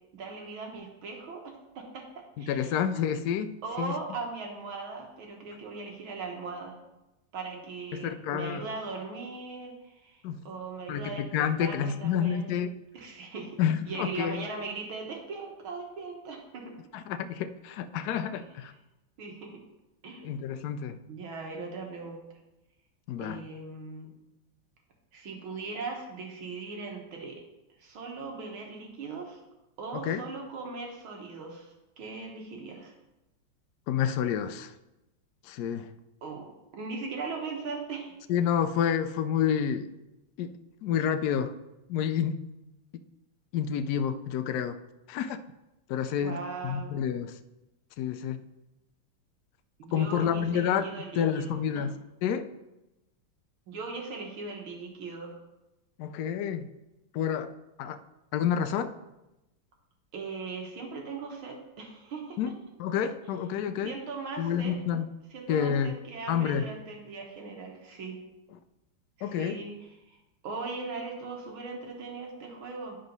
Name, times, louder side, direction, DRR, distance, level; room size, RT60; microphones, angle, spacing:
voice 1, 0.1-2.0 2.4-2.8 3.6-6.8 7.3-12.5 12.9-13.6 13.9-16.8 18.4-18.5 19.2-19.6 20.0-20.3 21.1-22.2 23.2-24.1 25.1-27.4 27.8-29.4 29.8-32.9 36.2-38.1 46.2-46.9 49.8-51.9 53.7-55.3 60.1-62.5 63.8-64.8 65.3-68.2 69.2-70.2 70.4-73.0, right 4 dB, 75° right, 1 dB, 2.1 m, -39 dB
voice 2, 2.4-3.9 7.9-8.7 10.2-10.4 10.9-12.7 13.6-14.5 16.9-18.7 20.2-21.0 23.1-23.4 29.9-30.2 33.9-34.7 35.5-35.9 38.3-39.9 40.4-40.5 40.8-41.5 41.9-42.4 43.5-44.8 45.1-45.4 45.9-46.4 46.6-47.3 48.0-48.4 49.9-51.9 52.2-52.5 56.0-56.6 57.1-57.5 57.8-58.0 58.3-58.9 62.4-62.5 62.8-63.9 64.4-65.1 65.5-65.9 66.3-66.6 69.2-69.6, left 8 dB, 80° left, 9 dB, 0.8 m, -29 dB
10.0 x 4.0 x 5.3 m, 0.97 s
omnidirectional pair, 2.3 m